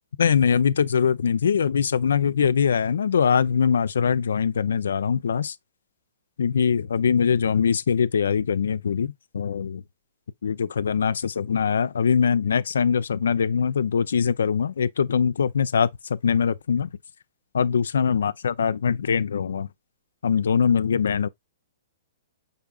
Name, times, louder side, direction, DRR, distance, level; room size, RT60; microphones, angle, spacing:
voice 1, 0.2-5.5 6.4-9.8 10.4-16.9 17.5-19.7 20.2-21.3, left 6 dB, 85° left, 0.4 m, -22 dB
5.4 x 3.6 x 2.3 m
hypercardioid pair, 140°, 0 cm